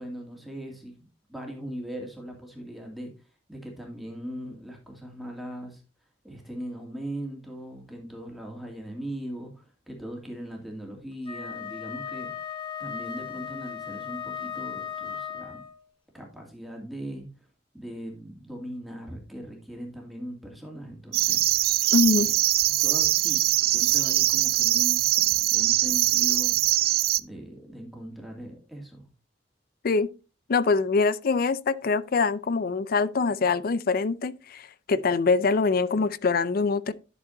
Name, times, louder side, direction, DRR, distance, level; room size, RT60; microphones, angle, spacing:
voice 1, 0.0-3.1 3.5-5.8 6.2-12.3 12.8-15.6 16.1-17.5 17.7-21.8 22.1-22.3 22.8-25.0 25.5-26.6 27.2-29.1, right 1 dB, ahead, 2.3 m, -39 dB
Wind instrument woodwind instrument, 11.2-15.8, left 7 dB, 30° left, 1.6 m, -36 dB
sound 1, 21.1-27.2, right 16 dB, 55° right, 0.3 m, -22 dB
voice 2, 21.9-22.3 29.8-30.1 30.5-36.9, left 4 dB, 55° left, 0.5 m, -24 dB
11.0 x 6.9 x 2.6 m
head